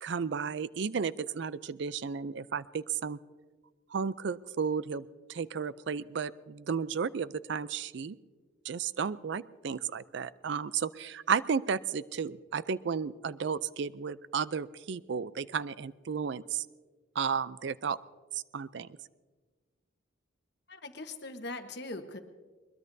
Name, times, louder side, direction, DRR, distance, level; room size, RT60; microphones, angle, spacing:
voice 1, 0.0-3.2 3.9-8.2 8.6-16.7 17.2-18.0 18.3-18.9, right 6 dB, 60° right, 17 dB, 0.4 m, -33 dB
voice 2, 20.7-22.2, left 2 dB, 55° left, 7 dB, 1.1 m, -41 dB
21.5 x 21.5 x 2.7 m, 1.4 s
head